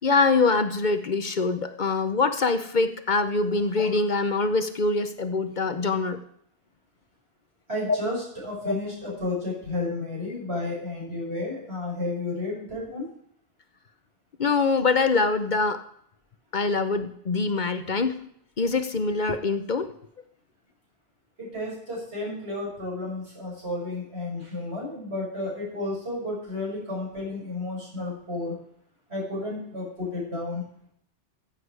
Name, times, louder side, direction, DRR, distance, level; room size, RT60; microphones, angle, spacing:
voice 1, 0.0-6.2 7.9-8.0 8.6-8.7 14.4-15.8 16.5-18.2 18.6-19.9, left 3 dB, 50° left, 10 dB, 0.9 m, -24 dB
voice 2, 7.7-13.1 21.4-28.6 29.1-30.6, left 2 dB, 80° right, -4 dB, 6.6 m, -32 dB
15.0 x 8.3 x 4.7 m, 0.70 s
omnidirectional pair, 1.1 m